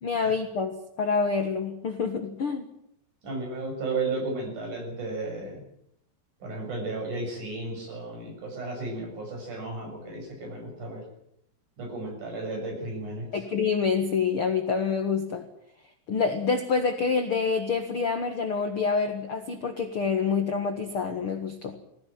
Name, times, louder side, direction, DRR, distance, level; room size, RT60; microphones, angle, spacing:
voice 1, 0.0-2.7 13.3-15.5 16.1-21.8, left 5 dB, 70° left, 6 dB, 1.3 m, -27 dB
voice 2, 3.2-5.6 6.4-11.0 11.8-13.3, right 3 dB, 45° right, 1 dB, 8.3 m, -34 dB
21.0 x 16.5 x 9.3 m, 0.74 s
omnidirectional pair, 5.0 m